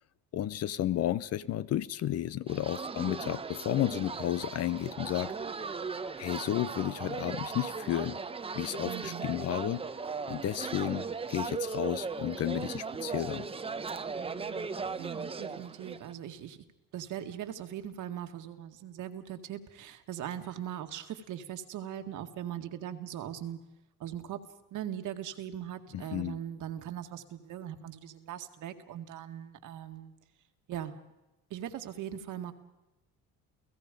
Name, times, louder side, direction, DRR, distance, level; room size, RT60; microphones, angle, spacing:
voice 1, 0.3-5.4 6.2-8.2 8.5-9.8 10.3-13.5 25.9-26.4, left 12 dB, 45° left, 0.7 m, -32 dB
sound 1, 2.5-16.1, right 5 dB, 15° right, 0.8 m, -38 dB
voice 2, 8.8-9.3 14.2-16.6 16.9-23.6 24.0-24.4 24.7-30.1 30.7-31.0 31.5-32.5, right 10 dB, 60° right, 1.9 m, -40 dB
29.5 x 17.0 x 5.2 m
cardioid pair, 140°, 34 cm